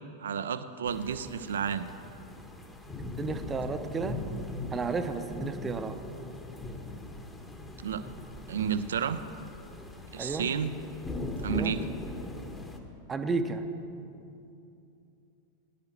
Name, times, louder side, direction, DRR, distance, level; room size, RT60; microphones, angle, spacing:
voice 1, 0.2-1.9 7.8-8.0 8.5-9.2 10.1-10.7 11.4-11.8, right 7 dB, 65° right, 11 dB, 0.5 m, -31 dB
sound 1, 0.9-12.8, left 2 dB, 15° left, 1.3 m, -40 dB
voice 2, 3.0-4.2 4.7-6.0 10.2-10.5 11.5-11.7 13.1-13.6, right 4 dB, 20° right, 8 dB, 0.8 m, -32 dB
21.0 x 10.5 x 3.1 m, 2.7 s
figure-of-eight pair, 90°, 0 cm